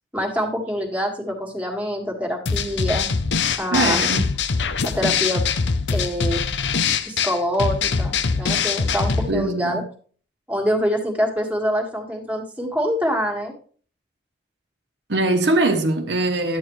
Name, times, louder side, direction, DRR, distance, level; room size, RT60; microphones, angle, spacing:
voice 1, 0.1-3.1 3.6-4.0 4.8-5.4 5.9-6.4 7.1-9.8 10.5-13.5, equal, 10° right, 1.8 m, -25 dB
sound 1, 2.5-9.3, left 5 dB, 75° left, 0.7 m, -23 dB
voice 2, 3.7-4.2 9.3-9.8 15.1-16.6, right 2 dB, 70° right, 1.2 m, -21 dB
11.0 x 8.4 x 3.1 m
head